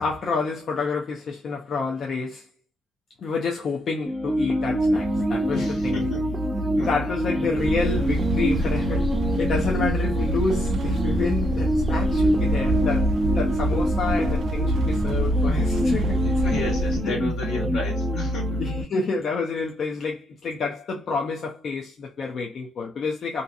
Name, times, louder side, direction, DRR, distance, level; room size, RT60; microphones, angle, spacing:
voice 1, 0.0-2.5 3.2-6.1 6.9-9.0 9.4-16.6 17.0-17.2 18.6-23.4, left 4 dB, 55° left, 0.5 m, -29 dB
sound 1, 4.1-18.8, equal, 20° right, 0.5 m, -25 dB
voice 2, 5.5-6.3 6.8-6.9 8.6-8.7 15.9-18.6, left 3 dB, 80° left, 1.3 m, -34 dB
sound 2, 7.6-17.0, right 1 dB, 70° right, 0.4 m, -26 dB
2.7 x 2.6 x 2.3 m
cardioid pair, 90°, 0 cm